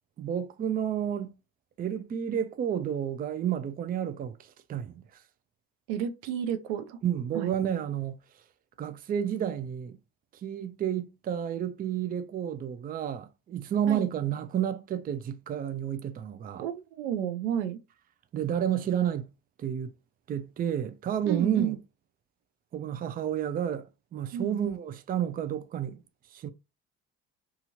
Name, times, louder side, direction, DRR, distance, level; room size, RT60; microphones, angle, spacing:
voice 1, 0.2-1.3 1.8-5.2 7.0-8.2 8.8-10.0 10.3-16.6 18.3-19.3 19.6-19.9 20.3-21.8 22.7-26.0 26.3-26.5, right 9 dB, 25° right, 0.4 m, -31 dB
voice 2, 5.9-7.0 7.3-7.5 13.9-14.1 16.6-17.8 21.3-21.8 24.3-24.6, right 9 dB, 90° right, 0.5 m, -31 dB
2.8 x 2.4 x 2.8 m
supercardioid pair, 75°, 33 cm